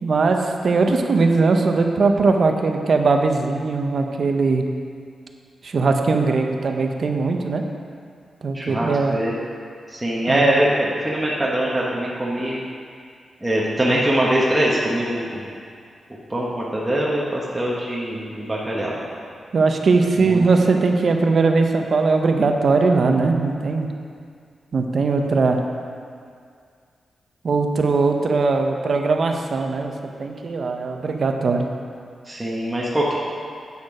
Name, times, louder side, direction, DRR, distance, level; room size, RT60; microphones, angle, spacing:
voice 1, 0.0-4.6 5.6-7.6 8.4-9.2 10.3-10.6 19.5-23.9 24.7-25.6 27.4-31.6, right 4 dB, 60° right, 4 dB, 0.7 m, -20 dB
voice 2, 8.5-9.3 9.9-12.6 13.4-15.4 16.3-19.0 20.2-20.5 32.2-33.1, right 1 dB, 15° right, -6 dB, 1.2 m, -22 dB
8.3 x 6.5 x 4.9 m, 2.3 s
cardioid pair, 85°, 0 cm